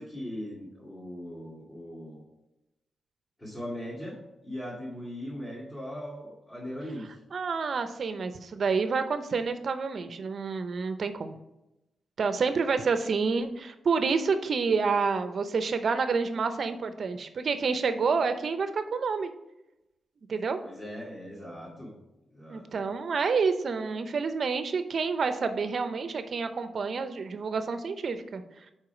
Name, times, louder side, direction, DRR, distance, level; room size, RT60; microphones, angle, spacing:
voice 1, 0.0-2.2 3.4-4.2 4.4-7.2 20.6-21.9 22.3-22.8, equal, 20° left, -9 dB, 2.3 m, -39 dB
voice 2, 7.3-11.3 12.2-19.3 20.3-20.6 22.5-28.4, right 5 dB, 55° right, 9 dB, 0.6 m, -28 dB
4.8 x 4.6 x 5.8 m, 0.93 s
cardioid pair, 100°, 0 cm